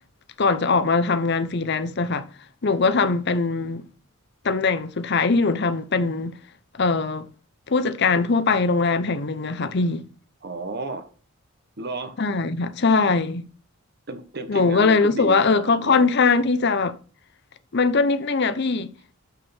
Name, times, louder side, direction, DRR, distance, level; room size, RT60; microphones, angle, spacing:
voice 1, 0.4-2.3 2.6-3.9 4.4-6.4 6.7-7.3 7.7-10.1 12.2-13.5 14.5-17.0 17.7-18.9, left 4 dB, 50° left, 0.7 m, -21 dB
voice 2, 10.4-11.1 11.8-12.2 14.1-16.1, right 2 dB, 50° right, 1.1 m, -33 dB
6.3 x 5.7 x 5.7 m
head